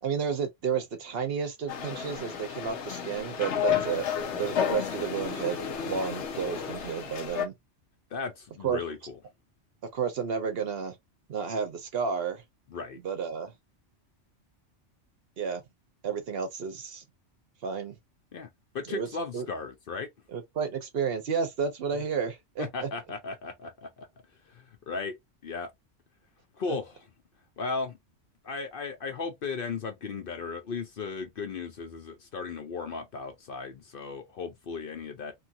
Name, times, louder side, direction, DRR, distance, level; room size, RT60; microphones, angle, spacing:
voice 1, 0.0-4.0 4.3-7.5 8.6-8.8 9.9-11.0 11.3-12.4 13.0-13.5 15.4-15.6 16.0-17.0 17.6-18.0 18.9-19.5 20.3-22.9 26.7-26.8, right 6 dB, 60° right, 0.8 m, -31 dB
sound 1, 1.7-7.5, left 8 dB, 75° left, 1.0 m, -32 dB
voice 2, 8.1-9.2 12.7-13.0 18.3-18.5 18.7-20.1 22.6-24.1 24.5-25.2 25.4-25.7 26.6-26.9 27.6-28.0 28.4-35.3, left 4 dB, 55° left, 0.7 m, -36 dB
2.8 x 2.4 x 2.7 m
omnidirectional pair, 1.2 m